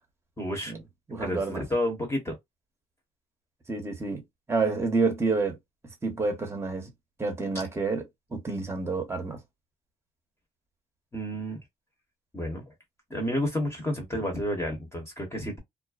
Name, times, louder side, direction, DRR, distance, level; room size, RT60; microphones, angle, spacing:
voice 1, 0.4-0.7 1.2-2.4 11.1-11.6 12.3-12.7 13.1-15.6, left 1 dB, 15° left, 1.0 m, -30 dB
voice 2, 1.1-1.6 3.7-4.2 4.5-5.6 6.0-6.9 7.2-8.0 8.3-9.4, right 3 dB, 15° right, 0.9 m, -28 dB
2.4 x 2.1 x 2.3 m
cardioid pair, 110°, 17 cm